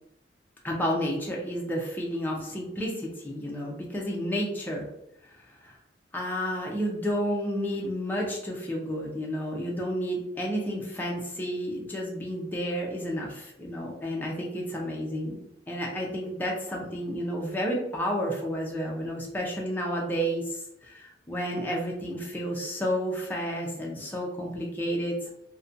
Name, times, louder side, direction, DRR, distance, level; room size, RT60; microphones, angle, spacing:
voice 1, 0.6-4.9 5.3-5.8 6.1-15.4 15.7-25.3, equal, 10° left, -2 dB, 0.4 m, -31 dB
2.5 x 2.1 x 2.5 m, 0.80 s
head